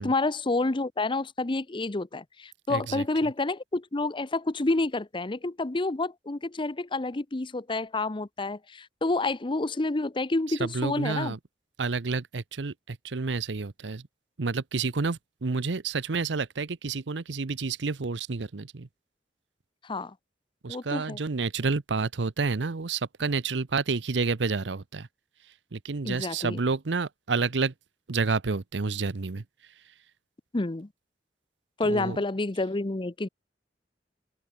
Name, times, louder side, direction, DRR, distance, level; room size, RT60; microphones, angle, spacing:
voice 1, 0.0-11.4 19.8-20.1 20.7-21.2 26.0-26.6 30.5-30.9 31.8-33.3, left 2 dB, 30° left, 0.8 m, -29 dB
voice 2, 2.7-3.0 10.5-11.4 11.8-14.0 14.4-18.9 20.6-25.1 25.7-27.7 28.1-29.4 31.8-32.2, right 4 dB, 90° right, 0.8 m, -29 dB
open air
head